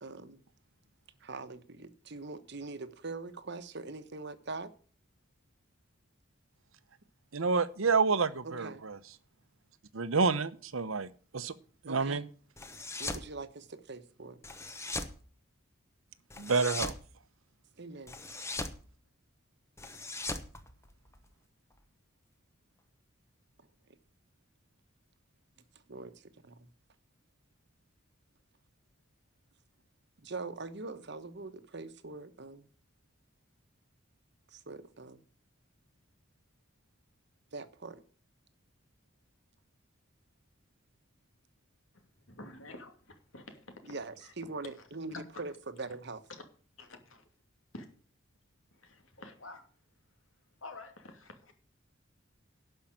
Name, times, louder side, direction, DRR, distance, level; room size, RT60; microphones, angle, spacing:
voice 1, 0.0-0.4 1.2-4.7 8.4-8.8 11.9-12.3 13.0-14.4 17.8-18.2 25.9-26.7 30.2-32.7 34.5-35.2 37.5-38.0 43.9-46.2, right 3 dB, 60° right, 1.1 m, -43 dB
voice 2, 7.3-9.0 9.9-11.1 11.3-11.5 11.8-12.2 16.4-16.9, right 4 dB, 90° right, 0.9 m, -28 dB
sound 1, 12.6-13.3 14.4-15.2 16.3-17.0 18.1-18.8 19.8-21.3, left 2 dB, 15° left, 1.1 m, -39 dB
voice 3, 42.3-43.9 44.2-44.3 44.6-44.7 45.1-45.4 46.8-47.3 47.7-47.9 48.7-49.6 50.6-51.5, left 2 dB, 80° left, 2.6 m, -48 dB
11.5 x 5.7 x 8.9 m
head